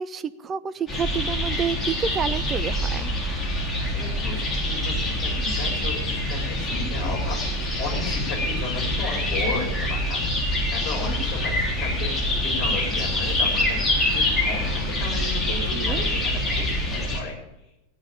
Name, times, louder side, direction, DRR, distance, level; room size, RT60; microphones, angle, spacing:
voice 1, 0.0-3.1 6.8-7.1 11.0-11.3 15.7-16.0, right 7 dB, 25° right, 13 dB, 0.8 m, -29 dB
sound 1, 0.9-17.2, left 1 dB, 15° left, 3.8 m, -25 dB
voice 2, 3.8-17.3, left 3 dB, 35° left, -2 dB, 7.0 m, -34 dB
15.0 x 9.5 x 9.4 m, 0.92 s
figure-of-eight pair, 90°, 0 cm